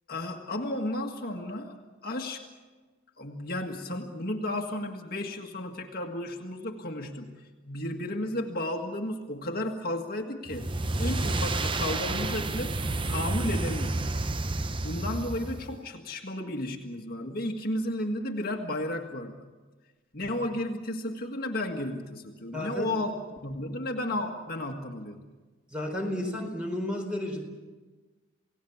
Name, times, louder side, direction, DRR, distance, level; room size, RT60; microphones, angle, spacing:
voice 1, 0.1-2.4 3.2-12.8 13.0-14.2 14.8-19.5 20.1-25.2, left 1 dB, 50° left, 3 dB, 1.8 m, -33 dB
sound 1, 10.5-15.8, right 2 dB, 25° right, 0.7 m, -30 dB
voice 2, 22.5-22.9 25.7-27.4, left 1 dB, 5° right, 2 dB, 4.5 m, -32 dB
29.0 x 18.0 x 7.2 m, 1.3 s
head